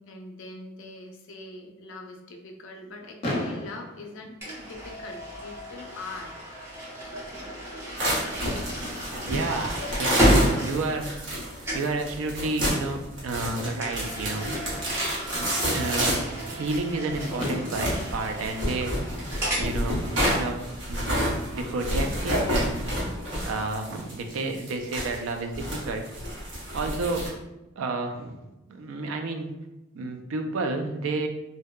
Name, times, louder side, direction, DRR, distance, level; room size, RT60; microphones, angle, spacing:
voice 1, 0.0-6.3, left 2 dB, 75° left, 2 dB, 0.4 m, -42 dB
Fireworks, 3.2-5.2 6.1-6.2 6.3-6.5 6.9-7.0 10.2-12.1 13.8-13.9 16.9-17.0 17.4-19.7, left 1 dB, 30° left, 0.6 m, -35 dB
sound 1, 4.4-11.4 11.6-12.0 13.8-19.7, equal, 15° right, 0.7 m, -31 dB
sound 2, 8.0-27.3, equal, 65° right, 0.9 m, -30 dB
voice 2, 9.3-11.3 11.7-14.5 15.3-18.9 19.5-20.6 20.9-21.1 21.5-22.9 23.4-26.0 26.7-27.3 27.8-28.4 28.7-29.5 29.9-31.3, right 3 dB, 85° right, 5 dB, 0.4 m, -31 dB
2.6 x 2.1 x 2.2 m, 0.97 s
head